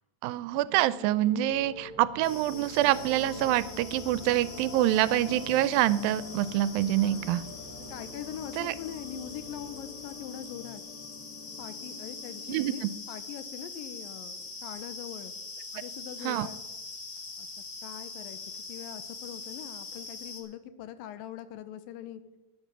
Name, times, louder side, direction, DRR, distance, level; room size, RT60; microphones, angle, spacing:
voice 1, 0.2-7.4 8.6-8.7 12.5-12.9 16.2-16.5, right 14 dB, 85° right, 17 dB, 2.3 m, -26 dB
sound 1, 0.6-13.6, left 2 dB, 5° left, 3.3 m, -45 dB
sound 2, 2.2-20.4, left 4 dB, 45° left, 1.4 m, -43 dB
voice 2, 6.8-7.3 7.9-10.8 11.6-15.3 15.7-16.6 17.4-17.5 17.8-18.4 18.7-22.2, left 10 dB, 80° left, 13 dB, 2.4 m, -42 dB
10.5 x 10.0 x 6.8 m, 1.0 s
omnidirectional pair, 4.1 m